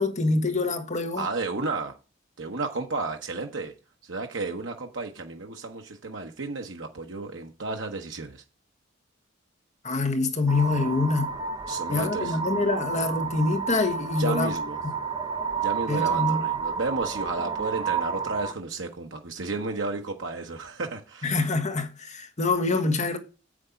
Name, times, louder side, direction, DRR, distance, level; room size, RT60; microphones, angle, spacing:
voice 1, 0.0-1.2 9.8-11.3 11.9-14.5 15.9-16.4 21.2-23.2, left 3 dB, 40° left, 1.3 m, -25 dB
voice 2, 1.1-2.0 2.4-3.7 4.0-8.4 11.7-12.4 14.2-14.8 15.6-21.4, right 3 dB, 75° right, 1.0 m, -32 dB
sound 1, 10.5-18.5, right 6 dB, 20° right, 1.0 m, -30 dB
8.1 x 6.3 x 5.1 m
head